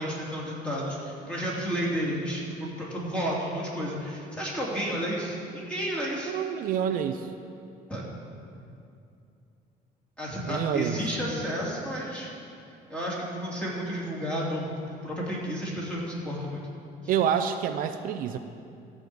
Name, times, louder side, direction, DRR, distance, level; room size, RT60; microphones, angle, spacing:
voice 1, 0.0-6.3 7.9-8.1 10.2-12.3 12.9-16.6, equal, 5° left, -5 dB, 2.8 m, -31 dB
voice 2, 6.2-7.3 10.4-11.0 17.1-18.4, right 9 dB, 65° right, 8 dB, 0.5 m, -27 dB
14.0 x 4.9 x 8.0 m, 2.5 s
cardioid pair, 125°, 16 cm